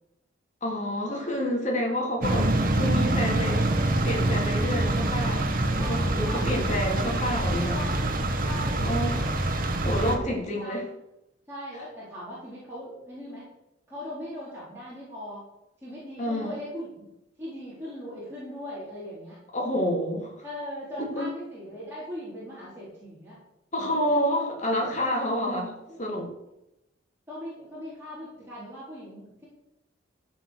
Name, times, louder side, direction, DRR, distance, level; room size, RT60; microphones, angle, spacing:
voice 1, 0.6-2.5 2.7-3.7 4.0-5.5 5.8-8.0 8.8-9.3 9.8-10.9 16.2-16.6 19.5-20.3 21.0-21.3 23.7-26.3, equal, 40° left, -1 dB, 3.4 m, -28 dB
voice 2, 2.2-2.6 5.8-6.6 7.7-8.0 8.4-9.4 9.9-10.8 11.5-13.5 13.9-15.4 15.8-17.1 17.4-19.4 20.4-23.4 23.8-24.1 25.9-26.0 27.3-29.5, equal, 15° right, -10 dB, 4.4 m, -40 dB
sound 1, 2.2-10.2, right 1 dB, 45° right, 1.6 m, -25 dB
15.0 x 6.2 x 6.7 m, 0.88 s
head